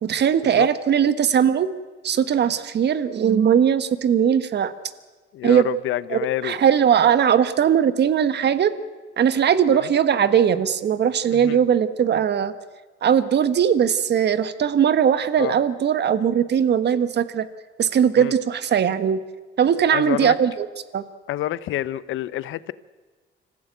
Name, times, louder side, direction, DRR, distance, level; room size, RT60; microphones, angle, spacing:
voice 1, 0.0-1.7 2.0-4.7 5.4-5.6 6.1-8.7 9.2-12.5 13.0-17.5 17.8-19.2 19.6-20.7 20.9-21.0, right 8 dB, 60° right, 13 dB, 1.4 m, -19 dB
voice 2, 5.3-6.6 11.3-11.6 15.4-15.5 18.2-18.3 19.9-20.3 21.3-22.7, left 14 dB, 85° left, 17 dB, 0.8 m, -27 dB
25.5 x 15.0 x 9.2 m, 1.3 s
cardioid pair, 90°, 20 cm